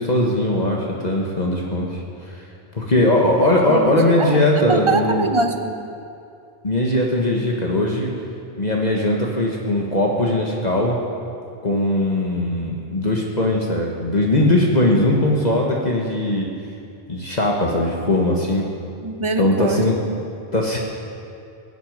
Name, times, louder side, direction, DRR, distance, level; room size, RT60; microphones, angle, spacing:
voice 1, 0.0-2.4 2.7-5.3 6.6-8.1 8.6-11.0 11.6-16.5 17.1-18.6 19.4-20.0 20.5-20.8, left 1 dB, 45° left, -1 dB, 1.6 m, -20 dB
voice 2, 3.7-5.9 19.0-19.8, right 3 dB, 30° right, 6 dB, 1.0 m, -23 dB
16.5 x 8.3 x 9.5 m, 2.5 s
omnidirectional pair, 1.0 m